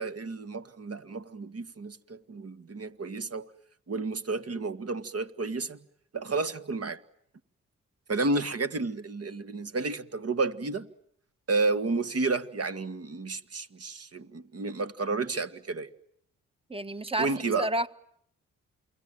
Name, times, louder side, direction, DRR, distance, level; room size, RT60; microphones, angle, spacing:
voice 1, 0.0-3.5 3.9-5.8 6.1-7.0 8.1-10.9 11.5-15.9 17.2-17.7, right 3 dB, 45° right, 1.8 m, -31 dB
voice 2, 16.7-17.3 17.6-17.9, right 1 dB, 15° right, 1.5 m, -29 dB
28.5 x 22.5 x 9.1 m
supercardioid pair, 50°, 34 cm